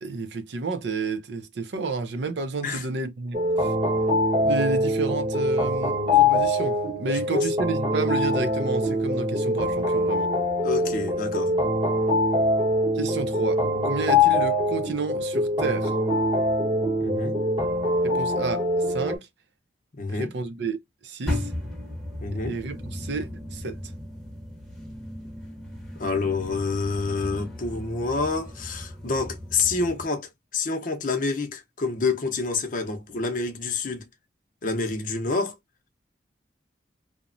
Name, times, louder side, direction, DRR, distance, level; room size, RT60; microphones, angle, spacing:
voice 1, 0.0-3.7 4.4-10.3 11.3-11.6 12.9-15.9 18.0-19.3 20.1-21.5 22.3-23.8, right 3 dB, 75° right, 0.5 m, -31 dB
sound 1, 3.3-19.2, left 1 dB, 30° right, 0.9 m, -23 dB
voice 2, 7.1-7.5 10.6-11.5 17.0-17.4 20.0-20.3 22.2-22.6 26.0-34.0 34.6-35.6, left 4 dB, 45° left, 0.6 m, -28 dB
sound 2, 21.3-30.1, left 1 dB, ahead, 0.8 m, -36 dB
2.9 x 2.1 x 2.4 m
head